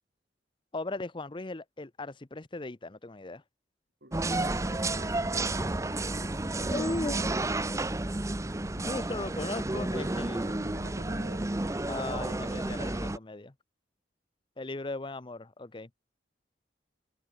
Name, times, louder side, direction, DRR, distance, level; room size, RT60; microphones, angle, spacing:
voice 1, 0.7-3.4 6.7-7.4 8.8-10.5 11.9-13.5 14.6-15.9, left 2 dB, 30° left, 0.8 m, -37 dB
voice 2, 4.0-6.1 6.6-7.3 10.5-11.6, right 1 dB, 65° right, 5.8 m, -48 dB
sound 1, 4.1-13.2, right 2 dB, 20° right, 0.7 m, -31 dB
head